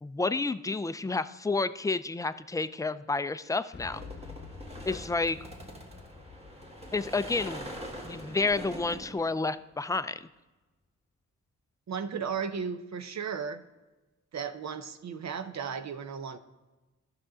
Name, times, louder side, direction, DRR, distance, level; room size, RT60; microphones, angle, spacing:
voice 1, 0.0-4.0 4.9-5.4 6.9-7.7 8.0-10.2, left 3 dB, 10° left, 13 dB, 0.3 m, -30 dB
Boom, 3.7-9.6, left 5 dB, 35° left, 0.9 m, -49 dB
sound 1, 3.9-9.4, equal, 20° right, 1.6 m, -43 dB
voice 2, 11.9-13.6 14.3-16.4, right 6 dB, 65° right, 10 dB, 0.7 m, -35 dB
14.5 x 5.9 x 3.8 m, 1.2 s
cardioid pair, 80°, 30 cm